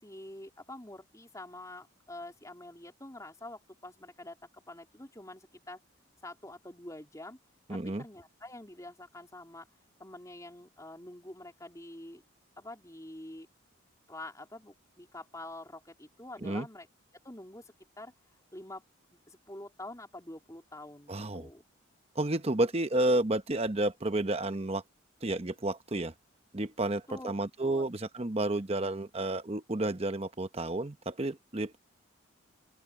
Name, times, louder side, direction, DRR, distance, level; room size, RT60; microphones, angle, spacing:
voice 1, 0.0-5.8 6.2-7.4 7.7-9.7 10.0-12.2 12.6-13.5 14.1-16.9 17.2-18.1 18.5-18.8 19.1-21.6 27.1-27.3 27.6-27.9, left 1 dB, 15° left, 3.7 m, -46 dB
voice 2, 7.7-8.0 16.4-16.7 21.1-21.5 22.1-24.8 25.2-26.1 26.5-31.8, right 2 dB, 30° right, 1.0 m, -31 dB
open air
head